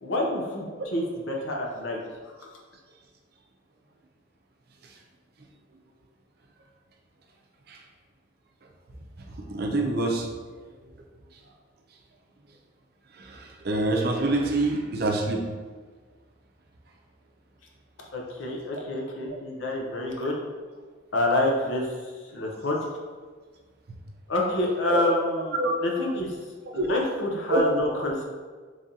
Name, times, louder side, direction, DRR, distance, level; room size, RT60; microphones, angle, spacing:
voice 1, 0.0-2.0 18.1-20.3 21.1-21.9 22.3-22.8 24.3-26.3 26.7-28.2, left 1 dB, 85° left, -1 dB, 0.7 m, -27 dB
voice 2, 9.5-10.3 13.2-15.4 24.9-25.0 25.5-25.7 26.7-26.9 27.5-27.6, right 2 dB, 55° right, 2 dB, 0.5 m, -26 dB
3.7 x 3.3 x 2.7 m, 1.5 s
head